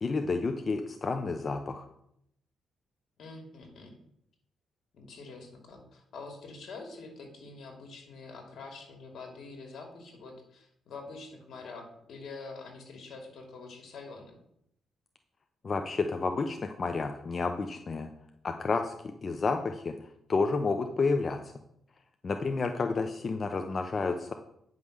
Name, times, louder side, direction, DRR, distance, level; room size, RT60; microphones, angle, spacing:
voice 1, 0.0-1.8 15.6-18.1 18.4-18.9 19.2-19.9 20.3-21.5 22.2-24.3, left 4 dB, 35° left, 6 dB, 0.7 m, -30 dB
voice 2, 3.2-4.0 4.9-14.4 22.7-23.0, left 3 dB, 70° left, 3 dB, 2.5 m, -46 dB
9.3 x 5.5 x 6.4 m, 0.75 s
cardioid pair, 115°, 0 cm